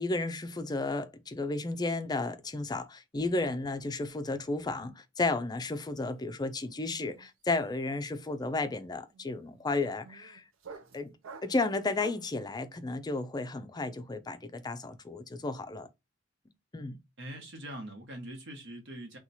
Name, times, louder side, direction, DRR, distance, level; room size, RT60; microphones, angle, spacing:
voice 1, 0.0-10.4 10.9-11.1 11.4-15.9 16.7-17.0, left 3 dB, 20° left, 0.4 m, -33 dB
sound 1, 5.6-5.9 6.1-12.4, right 4 dB, 85° right, 0.6 m, -52 dB
voice 2, 17.2-19.2, right 1 dB, 65° right, 1.1 m, -43 dB
2.9 x 2.3 x 4.0 m
head